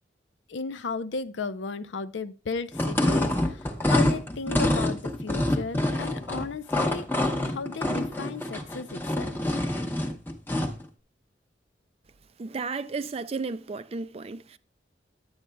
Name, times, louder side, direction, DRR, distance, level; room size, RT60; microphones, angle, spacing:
voice 1, 0.5-7.1 7.4-9.3, left 4 dB, 80° left, 0.6 m, -35 dB
sound 1, 2.7-10.8, left 1 dB, 10° left, 0.9 m, -26 dB
voice 2, 12.4-14.6, right 4 dB, 35° right, 0.4 m, -33 dB
10.5 x 8.7 x 2.3 m
head